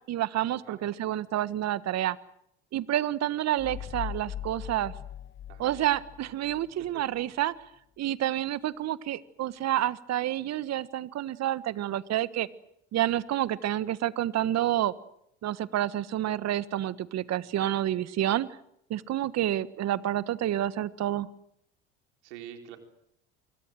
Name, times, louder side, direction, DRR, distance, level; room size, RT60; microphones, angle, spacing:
voice 1, 0.0-2.2 2.7-4.9 5.6-7.5 8.0-12.5 12.9-14.9 15.4-18.5 18.9-21.3, right 13 dB, 50° right, 16 dB, 1.5 m, -29 dB
sound 1, 3.6-6.9, left 10 dB, 35° left, 1.6 m, -40 dB
voice 2, 22.2-22.8, right 11 dB, 80° right, 5 dB, 4.1 m, -44 dB
26.5 x 23.0 x 7.7 m, 0.74 s
hypercardioid pair, 70°, 34 cm